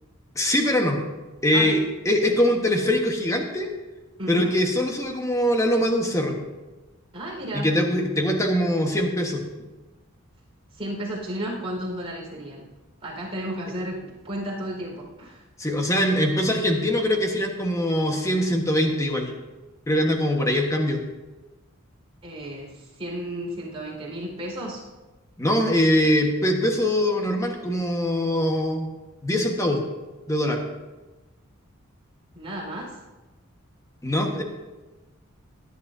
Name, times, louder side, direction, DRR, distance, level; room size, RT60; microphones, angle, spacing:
voice 1, 0.3-1.0 1.4-3.7 4.3-6.4 7.5-9.4 15.6-19.3 19.9-21.0 25.4-28.9 29.2-29.8 30.3-30.6 34.0-34.4, equal, 15° left, 2 dB, 1.3 m, -22 dB
voice 2, 4.2-4.5 7.1-7.7 10.7-12.7 13.0-15.4 22.2-24.8 32.3-33.0, right 1 dB, 25° right, -4 dB, 4.5 m, -33 dB
17.0 x 10.5 x 2.7 m, 1.1 s
head